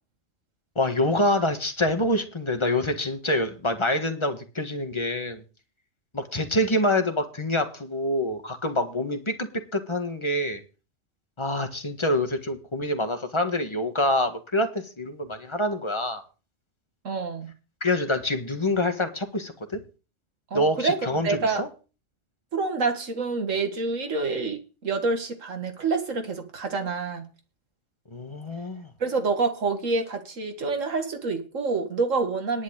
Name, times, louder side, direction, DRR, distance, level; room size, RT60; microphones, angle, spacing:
voice 1, 0.7-5.4 6.1-10.6 11.4-16.2 17.8-19.8 20.5-21.7 28.1-28.9, left 1 dB, 25° left, 1.6 m, -26 dB
voice 2, 17.0-17.5 20.5-21.0 21.2-21.6 22.5-27.3 29.0-32.6, right 4 dB, 90° right, 2.2 m, -27 dB
10.5 x 5.6 x 8.7 m
omnidirectional pair, 1.3 m